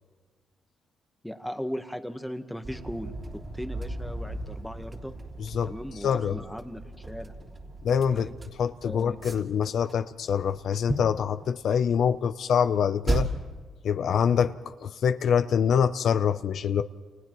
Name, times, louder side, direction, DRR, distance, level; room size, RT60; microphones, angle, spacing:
voice 1, 1.2-3.1 3.5-5.1 5.6-7.3 8.1-8.4 8.8-9.2, equal, 5° left, 7 dB, 1.2 m, -37 dB
sound 1, 2.6-9.9 10.2-11.3 12.1-12.2 13.1-13.6, right 2 dB, 30° right, 3.2 m, -35 dB
voice 2, 5.4-5.8 6.0-6.4 7.8-8.3 8.6-13.3 13.8-16.8, left 7 dB, 65° left, 10 dB, 0.5 m, -25 dB
29.5 x 29.0 x 3.1 m, 1.4 s
cardioid pair, 95°, 0 cm